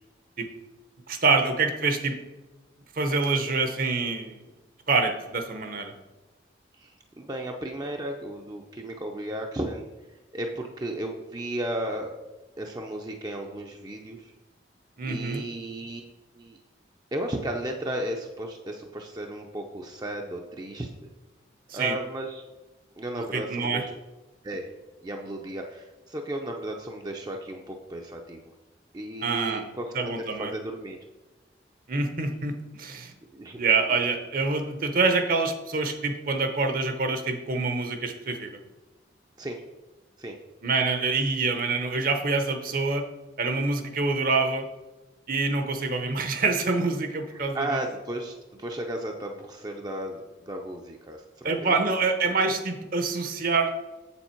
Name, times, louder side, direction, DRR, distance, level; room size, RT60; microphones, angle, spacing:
voice 1, 1.1-2.2 2.9-4.4 4.9-5.9 15.0-15.4 21.7-22.0 23.1-23.8 29.2-29.7 29.9-30.5 31.9-33.1 33.6-38.6 40.6-43.0 43.4-44.7 45.3-47.8 51.4-53.7, right 3 dB, 50° right, 6 dB, 0.8 m, -26 dB
voice 2, 6.7-9.9 10.3-12.1 12.6-14.3 15.0-16.0 16.3-16.6 17.1-20.9 21.7-22.4 23.0-23.9 24.4-24.7 25.0-28.4 28.9-29.9 30.2-31.0 33.3-33.6 39.4-39.6 40.2-40.3 47.3-51.8, right 1 dB, 20° right, 2 dB, 0.5 m, -34 dB
7.5 x 7.1 x 4.4 m, 1.2 s
head